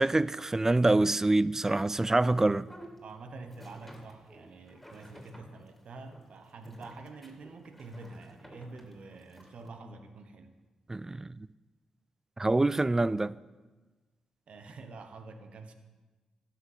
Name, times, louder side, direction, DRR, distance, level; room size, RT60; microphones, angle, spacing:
voice 1, 0.0-2.7 10.9-11.4 12.4-13.4, right 2 dB, 20° right, 0.4 m, -26 dB
sound 1, 2.2-9.7, equal, 5° left, 2.9 m, -53 dB
voice 2, 3.0-10.5 14.5-15.7, right 3 dB, 65° right, 1.2 m, -47 dB
12.5 x 5.9 x 8.0 m
supercardioid pair, 40°, 2 cm